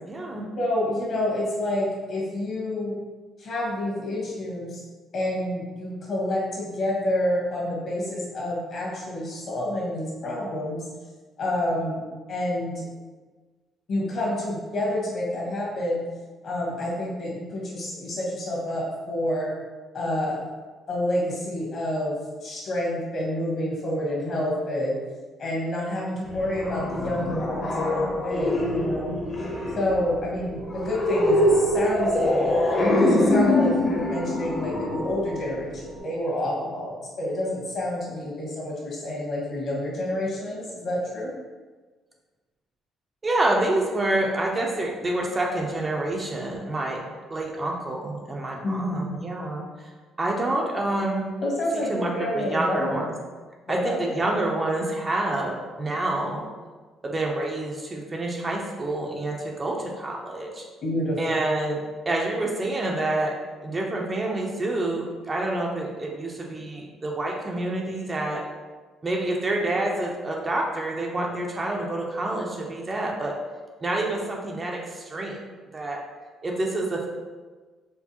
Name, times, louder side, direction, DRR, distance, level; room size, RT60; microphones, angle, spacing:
voice 1, 0.1-0.4 43.2-47.0 47.3-49.9 50.2-51.3 51.9-53.1 53.7-56.4 57.0-60.6 61.2-61.8 62.1-63.3 63.6-68.4 69.0-73.3 73.8-75.4 75.7-76.0 76.4-77.1, right 2 dB, 25° right, -1 dB, 0.5 m, -27 dB
voice 2, 0.6-2.9 3.4-4.8 5.1-10.8 11.4-12.0 12.3-12.9 13.9-16.0 16.4-19.5 19.9-20.4 20.9-25.0 25.4-29.2 29.7-32.6 33.0-41.3 48.6-49.2 51.4-53.1 53.7-54.2 60.8-61.4, left 1 dB, 55° left, -4 dB, 1.2 m, -28 dB
sound 1, 26.3-36.0, left 1 dB, 35° left, 0.8 m, -24 dB
4.4 x 2.0 x 2.8 m, 1.4 s
cardioid pair, 105°, 0 cm